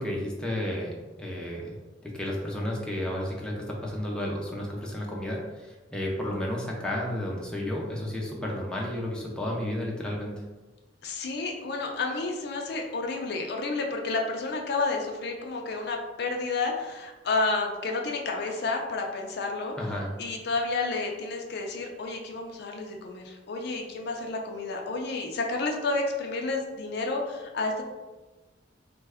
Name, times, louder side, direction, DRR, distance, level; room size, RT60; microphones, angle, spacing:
voice 1, 0.0-1.8 2.0-10.4 19.8-20.1, left 1 dB, 5° left, -3 dB, 0.5 m, -32 dB
voice 2, 11.0-19.7 20.2-27.8, left 3 dB, 60° left, 2 dB, 0.4 m, -30 dB
3.3 x 2.2 x 3.4 m, 1.2 s
head